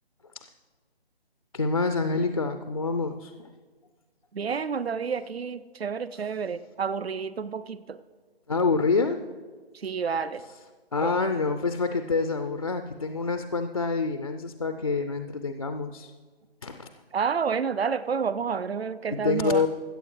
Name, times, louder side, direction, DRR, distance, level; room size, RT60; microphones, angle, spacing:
voice 1, 1.5-3.5 4.5-4.6 8.5-9.2 10.9-16.1 16.6-16.9 19.1-19.7, left 4 dB, 35° left, 8 dB, 0.4 m, -27 dB
voice 2, 4.3-8.0 9.7-10.4 11.0-11.1 17.1-19.7, right 6 dB, 80° right, 15 dB, 0.6 m, -29 dB
21.0 x 8.7 x 3.2 m, 1.4 s
figure-of-eight pair, 150°, 31 cm